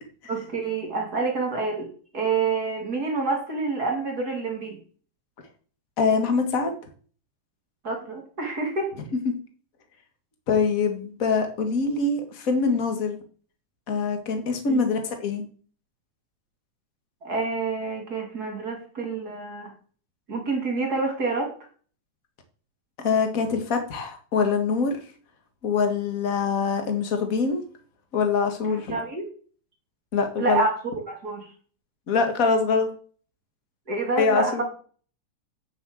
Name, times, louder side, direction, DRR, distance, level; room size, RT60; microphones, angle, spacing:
voice 1, 0.3-4.8 7.8-8.9 14.7-14.8 17.2-19.7 20.3-21.5 28.7-29.3 30.4-30.7 31.1-31.5 33.9-34.6, right 3 dB, 30° right, 2 dB, 2.8 m, -27 dB
voice 2, 6.0-6.8 10.5-13.2 13.9-15.4 23.0-25.0 25.6-27.6 28.1-29.0 30.1-30.6 32.1-32.9 34.2-34.6, left 5 dB, 40° left, 5 dB, 1.2 m, -24 dB
7.9 x 6.7 x 7.8 m, 0.43 s
omnidirectional pair, 3.9 m